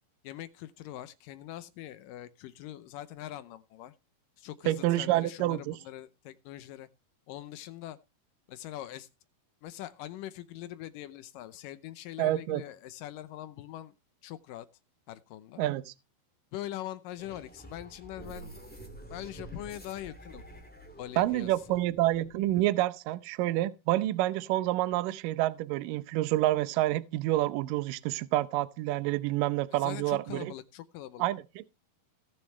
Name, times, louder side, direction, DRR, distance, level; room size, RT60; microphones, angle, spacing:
voice 1, 0.2-3.9 4.4-6.9 7.3-8.0 8.5-9.1 9.6-13.9 14.2-14.7 15.1-15.6 16.5-18.6 19.1-20.4 21.0-21.8 29.7-31.3, left 13 dB, 75° left, 2.2 m, -42 dB
voice 2, 4.7-5.7 12.2-12.6 15.6-15.9 21.2-30.5 31.2-31.7, right 15 dB, 75° right, 2.1 m, -28 dB
sound 1, 17.2-22.5, right 1 dB, 5° left, 1.4 m, -48 dB
19.5 x 6.9 x 3.1 m
omnidirectional pair, 4.4 m